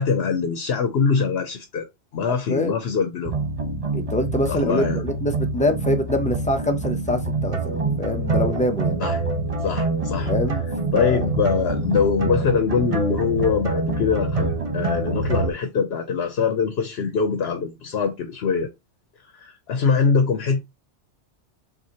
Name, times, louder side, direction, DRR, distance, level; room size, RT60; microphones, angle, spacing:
voice 1, 0.0-1.9 2.1-3.3 4.5-5.0 9.0-9.2 9.6-10.3 10.9-18.7 19.3-20.6, left 6 dB, 65° left, 0.9 m, -23 dB
sound 1, 3.3-15.5, right 3 dB, 35° right, 0.7 m, -25 dB
voice 2, 3.9-8.9 10.2-10.7 10.9-11.3, left 1 dB, 10° left, 0.4 m, -25 dB
5.8 x 2.5 x 2.8 m
omnidirectional pair, 1.2 m